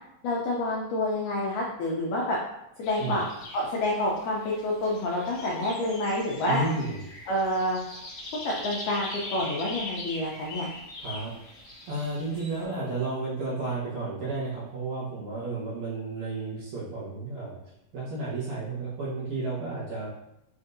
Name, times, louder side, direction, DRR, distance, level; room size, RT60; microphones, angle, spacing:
voice 1, 0.2-2.4 2.8-3.2 3.5-6.6 7.3-7.8 8.3-10.7, left 1 dB, 80° left, -4 dB, 1.8 m, -28 dB
sound 1, 2.8-12.6, left 2 dB, 50° left, 1.5 m, -41 dB
voice 2, 6.5-7.0 11.0-11.3 11.9-17.6 17.9-20.1, right 3 dB, 65° right, -8 dB, 2.0 m, -32 dB
6.5 x 2.6 x 2.6 m, 0.83 s
omnidirectional pair, 4.3 m